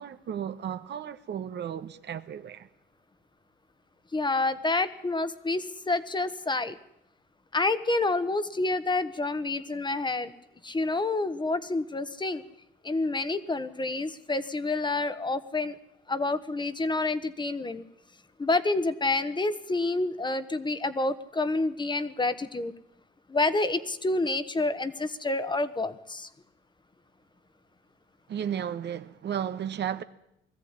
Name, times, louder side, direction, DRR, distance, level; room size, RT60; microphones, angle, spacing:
voice 1, 0.0-2.7 28.3-30.0, right 9 dB, 60° right, 1.1 m, -34 dB
voice 2, 4.1-6.8 7.5-10.3 10.6-12.4 12.8-15.8 16.1-17.8 18.4-22.7 23.3-26.3, left 2 dB, 25° left, 1.4 m, -28 dB
21.0 x 14.5 x 9.7 m
cardioid pair, 90°, 20 cm